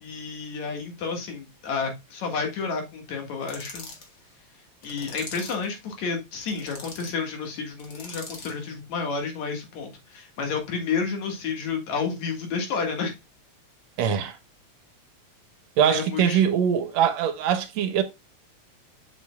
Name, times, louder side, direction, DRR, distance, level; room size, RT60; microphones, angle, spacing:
voice 1, 0.0-3.9 4.8-13.1 15.9-16.4, left 5 dB, 70° left, 3.0 m, -30 dB
sound 1, 3.4-4.1 4.8-5.7 6.4-7.1 7.8-8.6, left 3 dB, 45° left, 2.2 m, -41 dB
voice 2, 14.0-14.4 15.8-18.0, right 8 dB, 75° right, 1.8 m, -22 dB
7.5 x 6.8 x 2.3 m
omnidirectional pair, 3.3 m